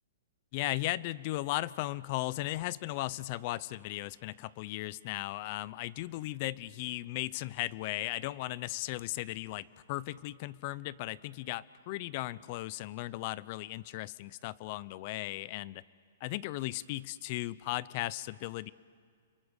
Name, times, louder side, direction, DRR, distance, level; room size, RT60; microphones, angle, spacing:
voice 1, 0.5-15.8 16.2-18.7, left 17 dB, 40° left, 20 dB, 0.6 m, -36 dB
30.0 x 23.5 x 6.5 m, 2.1 s
hypercardioid pair, 155°, 0 cm